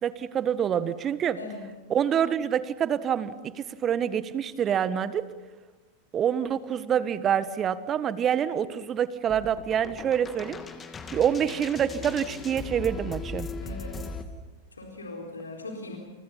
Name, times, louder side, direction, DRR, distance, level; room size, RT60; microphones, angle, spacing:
voice 1, 0.0-1.4 1.9-5.3 6.1-10.6 11.1-13.5, right 9 dB, 25° right, 14 dB, 1.5 m, -26 dB
sound 1, 9.3-14.2, left 3 dB, 20° left, 2.6 m, -38 dB
voice 2, 13.6-14.0 14.8-16.0, left 2 dB, 75° left, 1 dB, 4.0 m, -39 dB
30.0 x 29.0 x 5.6 m, 1.2 s
figure-of-eight pair, 90°, 0 cm